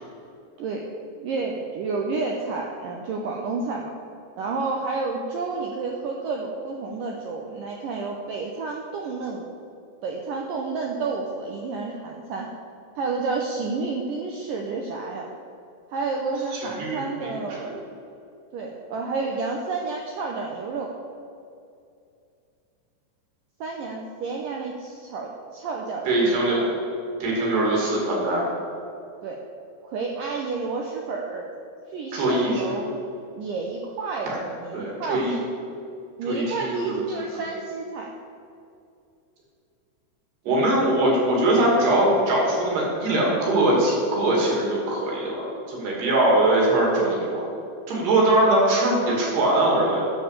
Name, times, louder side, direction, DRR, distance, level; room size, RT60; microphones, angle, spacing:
voice 1, 1.2-3.9 4.4-9.5 10.0-12.5 13.0-15.3 15.9-17.8 18.5-20.9 23.6-26.7 29.2-29.4 29.8-31.5 31.9-33.0 33.4-35.4 36.2-38.1 40.5-40.6, right 4 dB, 85° right, 0 dB, 1.9 m, -30 dB
voice 2, 16.5-17.3 17.6-17.8 26.1-26.6 27.2-28.4 32.1-32.7 34.3-34.4 34.7-35.4 36.3-37.0 40.5-47.5 47.9-50.0, right 1 dB, 65° right, -3 dB, 4.5 m, -22 dB
9.8 x 6.6 x 8.2 m, 2.5 s
omnidirectional pair, 5.0 m